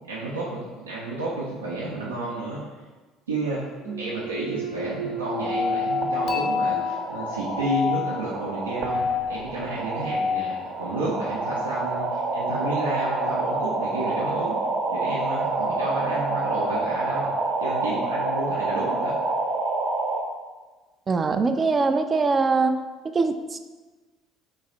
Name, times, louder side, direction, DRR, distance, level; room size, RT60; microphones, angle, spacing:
voice 1, 0.1-2.6 3.3-3.7 4.0-14.6 14.9-17.3 17.6-19.1, right 2 dB, 85° right, -6 dB, 0.6 m, -31 dB
Thump thud, 3.8-7.8 8.3-12.9, right 2 dB, 75° left, 1.0 m, -38 dB
sound 1, 5.3-20.2, right 1 dB, 55° right, 0.9 m, -27 dB
Dishes pots and pans / Chink clink, 6.3-9.4, left 8 dB, 55° left, 0.6 m, -37 dB
voice 2, 21.1-22.8 23.1-23.6, right 4 dB, 30° right, 8 dB, 0.3 m, -22 dB
3.9 x 3.3 x 3.8 m, 1.3 s
hypercardioid pair, 60°, 0 cm